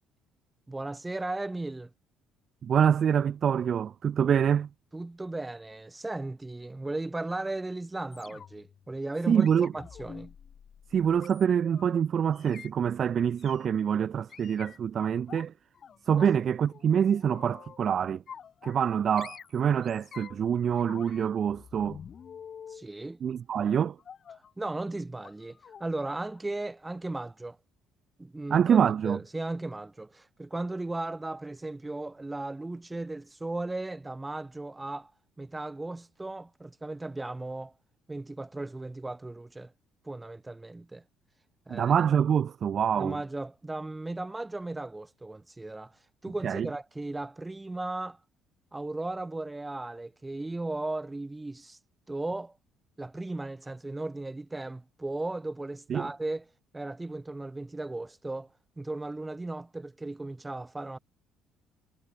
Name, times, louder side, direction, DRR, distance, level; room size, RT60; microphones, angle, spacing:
voice 1, 0.7-1.9 4.9-9.5 9.7-10.3 16.2-16.3 22.7-23.2 24.3-27.6 28.2-28.8 29.0-35.1 35.4-37.7 38.1-39.7 40.0-41.0 41.7-41.9 43.0-48.2 48.7-51.8 52.1-52.6 53.0-56.4 56.7-61.0, right 2 dB, 15° right, 0.9 m, -36 dB
voice 2, 2.6-4.7 9.3-9.7 10.9-15.5 16.1-18.2 18.6-22.0 23.2-24.0 28.5-29.2 41.7-43.2 46.4-46.7 55.9-56.1, right 8 dB, 50° right, 0.5 m, -25 dB
sound 1, 8.1-8.7 9.4-11.9 12.3-12.7 13.4-13.7 14.3-15.4 15.8-16.4 16.7-17.9 18.3-18.9 19.2-20.5 20.8-22.9 24.0-24.5 25.2-25.4 25.6-25.8 26.2-26.4 26.7-26.8, left 7 dB, 45° left, 3.6 m, -48 dB
hypercardioid pair, 50°, 0 cm